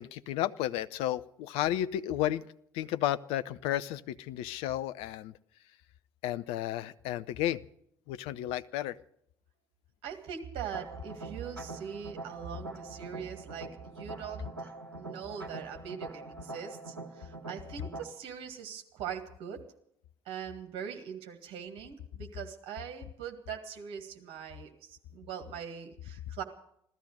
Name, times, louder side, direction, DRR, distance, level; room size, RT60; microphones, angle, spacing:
voice 1, 0.0-2.4 2.7-5.3 6.2-7.6 8.1-9.0, left 13 dB, 60° left, 12 dB, 0.6 m, -32 dB
voice 2, 10.0-14.7 15.0-19.6 20.3-26.4, right 8 dB, 55° right, 4 dB, 1.9 m, -41 dB
sound 1, 10.7-18.0, right 2 dB, 90° right, 1.1 m, -44 dB
15.5 x 13.5 x 6.5 m, 0.70 s
figure-of-eight pair, 50°, 12 cm